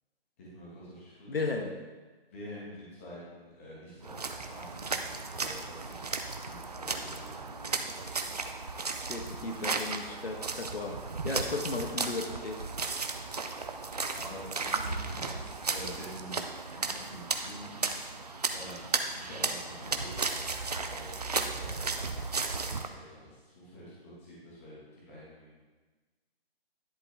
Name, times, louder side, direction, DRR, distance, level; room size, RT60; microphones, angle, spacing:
voice 1, 0.4-1.4 2.3-8.5 13.8-25.5, equal, 15° left, -7 dB, 1.6 m, -48 dB
voice 2, 1.3-1.7 9.1-12.7, left 3 dB, 70° left, 4 dB, 1.3 m, -35 dB
sound 1, 4.0-22.9, right 4 dB, 40° right, 0.6 m, -35 dB
11.0 x 7.8 x 3.5 m, 1.3 s
hypercardioid pair, 175°, 31 cm